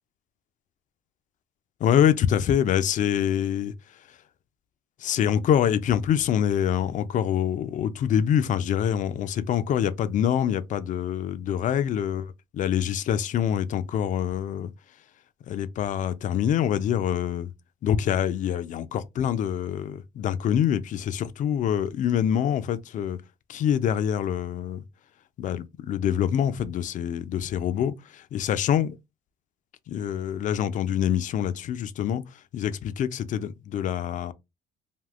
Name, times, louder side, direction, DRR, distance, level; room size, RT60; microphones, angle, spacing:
voice 1, 1.8-3.7 5.0-14.7 15.5-17.5 17.8-23.2 23.5-24.8 25.4-28.9 29.9-32.2 32.5-34.3, left 9 dB, 50° left, 0.4 m, -25 dB
3.4 x 2.4 x 2.3 m
cardioid pair, 110°, 17 cm